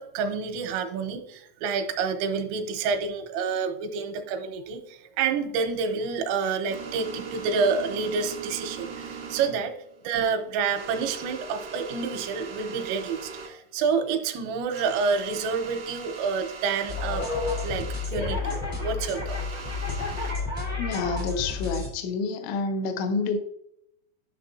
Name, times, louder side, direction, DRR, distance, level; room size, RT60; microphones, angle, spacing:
voice 1, 0.0-9.7 10.1-17.3 17.6-19.4, right 5 dB, 85° right, 6 dB, 3.4 m, -28 dB
sound 1, 5.6-13.5 13.8-13.9 14.3-14.4 14.7-18.1 19.2-20.3, right 5 dB, 60° right, 1.3 m, -41 dB
sound 2, 16.9-21.9, left 4 dB, 50° left, 0.5 m, -30 dB
voice 2, 20.8-23.4, left 4 dB, 75° left, 7 dB, 2.9 m, -28 dB
11.0 x 6.6 x 2.6 m, 0.73 s
omnidirectional pair, 5.9 m